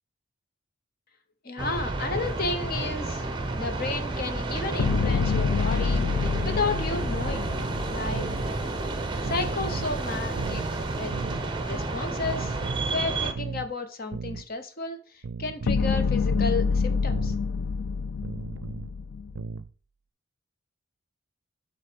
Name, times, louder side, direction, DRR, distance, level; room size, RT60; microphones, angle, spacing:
voice 1, 1.4-3.2 3.6-7.5 7.9-8.3 9.2-10.6 11.0-11.1 11.7-12.6 12.8-17.3, left 3 dB, 45° left, 8 dB, 1.0 m, -32 dB
sound 1, 1.6-13.3, right 2 dB, 25° right, 0.8 m, -30 dB
sound 2, 4.8-9.1 15.7-19.4, left 5 dB, 85° left, 0.4 m, -27 dB
sound 3, 8.1-8.4 9.2-9.9 10.4-10.7 11.1-11.4 12.2-12.9 13.3-13.7 14.1-14.4 15.2-15.9 16.3-16.7 17.1-17.4 18.2-18.9 19.3-19.7, right 4 dB, 75° right, 0.4 m, -36 dB
7.4 x 4.1 x 5.2 m, 0.41 s
head